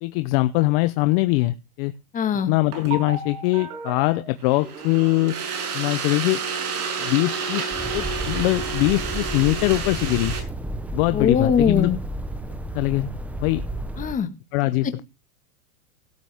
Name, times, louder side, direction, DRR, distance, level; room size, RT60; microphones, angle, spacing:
voice 1, 0.0-1.9 2.5-5.4 5.7-6.4 7.0-10.3 10.9-11.9 12.7-13.1 13.4-13.6 14.5-15.0, left 19 dB, 40° left, 13 dB, 0.7 m, -22 dB
voice 2, 2.1-2.5 11.1-12.0 14.0-14.3, left 7 dB, 15° left, 9 dB, 1.6 m, -21 dB
sound 1, 2.7-10.4, right 5 dB, 85° right, 6.4 m, -30 dB
sound 2, 7.7-14.2, right 1 dB, 5° right, 0.8 m, -32 dB
17.0 x 9.0 x 3.5 m, 0.28 s
supercardioid pair, 150°, 44 cm